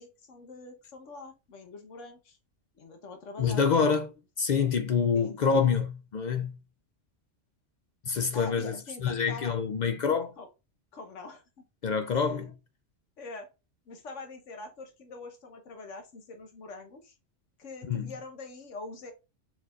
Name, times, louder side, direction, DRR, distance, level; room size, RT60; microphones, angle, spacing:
voice 1, 0.0-2.4 2.7-3.6 5.1-5.6 8.3-9.6 10.4-10.5 10.9-11.6 12.1-12.4 13.2-13.5 13.9-17.1 17.6-19.1, left 3 dB, 85° left, 1.4 m, -44 dB
voice 2, 3.4-6.6 8.0-8.7 9.0-10.3 11.8-12.6 17.9-18.1, left 6 dB, 60° left, 0.4 m, -27 dB
4.5 x 3.9 x 2.4 m
omnidirectional pair, 1.2 m